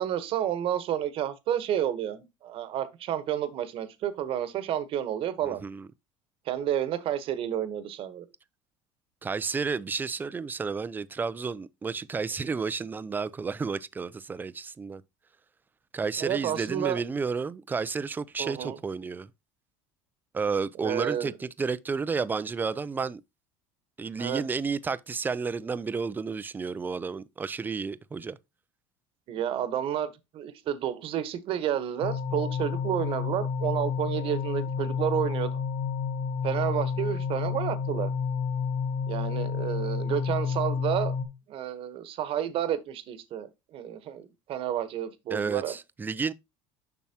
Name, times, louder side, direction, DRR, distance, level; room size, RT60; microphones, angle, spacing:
voice 1, 0.0-5.6 6.5-8.2 16.2-17.0 18.4-18.8 20.8-21.3 24.2-24.4 29.3-35.6 36.4-38.1 39.1-41.1 41.5-45.8, right 10 dB, 55° right, 1.1 m, -30 dB
voice 2, 5.4-5.9 9.2-15.0 15.9-19.3 20.3-23.2 24.0-28.4 45.3-46.3, right 5 dB, 15° right, 0.4 m, -31 dB
sound 1, 32.0-41.3, left 6 dB, 80° left, 1.3 m, -30 dB
7.1 x 6.0 x 2.8 m
supercardioid pair, 120°, 11 cm